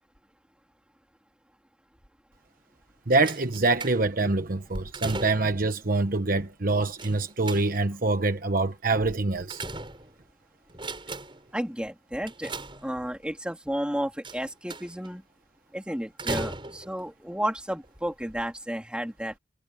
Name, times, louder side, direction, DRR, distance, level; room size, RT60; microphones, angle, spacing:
voice 1, 3.1-9.6, right 3 dB, 45° right, 1.1 m, -25 dB
sound 1, 3.2-4.3 4.7-5.7 7.0-8.0 9.0-10.3 10.7-11.5 12.3-13.2 14.2-15.1 16.2-17.0 17.8-18.0 18.3-18.4, right 2 dB, 25° right, 7.4 m, -37 dB
voice 2, 11.5-12.5 12.8-15.2 15.7-19.4, equal, 5° right, 3.2 m, -32 dB
head